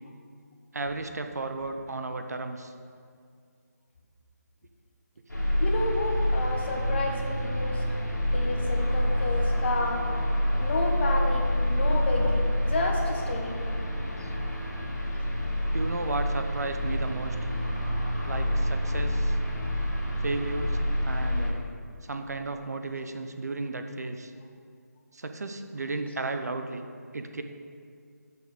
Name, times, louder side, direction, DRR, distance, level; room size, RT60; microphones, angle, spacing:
voice 1, 0.7-2.7 14.2-14.3 15.7-17.5 18.3-19.4 20.2-20.8 21.0-21.6 22.0-24.3 25.1-26.8 27.1-27.4, right 3 dB, 65° right, 7 dB, 0.7 m, -34 dB
sound 1, 5.3-21.5, left 1 dB, 85° left, 2.0 m, -27 dB
voice 2, 5.6-7.8 8.3-10.0 10.6-13.5, left 2 dB, 35° left, 0 dB, 1.2 m, -31 dB
6.0 x 5.9 x 6.4 m, 2.2 s
figure-of-eight pair, 155°, 9 cm